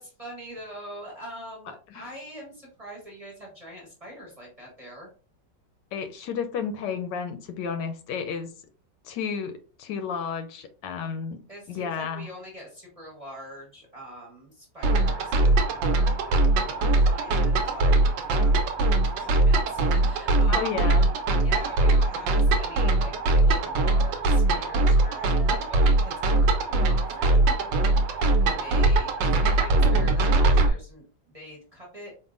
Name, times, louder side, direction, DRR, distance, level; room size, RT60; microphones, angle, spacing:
voice 1, 0.0-5.1 11.5-18.0 18.3-18.6 19.2-21.1 21.4-27.6 28.1-32.2, equal, 25° right, -2 dB, 0.9 m, -43 dB
voice 2, 5.9-8.5 9.0-11.4 11.7-12.3 20.5-21.1 28.1-28.2, left 6 dB, 75° left, 7 dB, 1.2 m, -32 dB
sound 1, 14.8-30.7, right 2 dB, 85° right, 1.3 m, -21 dB
4.6 x 2.7 x 2.5 m, 0.38 s
omnidirectional pair, 2.0 m